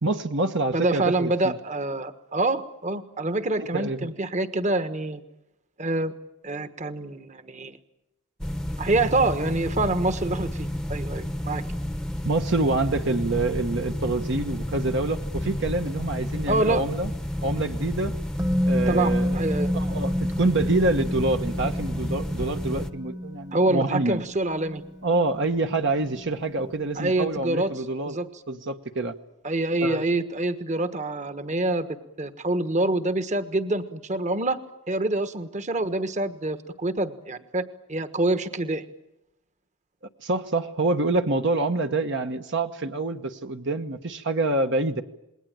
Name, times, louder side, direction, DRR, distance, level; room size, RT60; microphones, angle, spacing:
voice 1, 0.0-1.5 3.6-4.1 12.2-17.1 17.4-18.1 18.7-19.4 19.7-24.2 25.0-28.2 28.5-29.1 29.8-30.1 40.2-45.0, right 2 dB, 60° right, 6 dB, 1.2 m, -26 dB
voice 2, 0.7-5.2 5.8-6.1 6.4-7.8 8.8-11.6 16.5-16.8 18.9-19.7 23.5-24.8 27.0-27.7 28.1-28.3 29.4-34.6 34.9-38.8, right 2 dB, 35° right, 10 dB, 1.4 m, -26 dB
sound 1, 8.4-22.9, left 1 dB, 5° left, 0.9 m, -31 dB
Musical instrument, 18.4-26.3 26.6-26.7, equal, 20° right, 1.2 m, -30 dB
27.5 x 21.0 x 9.0 m, 0.87 s
head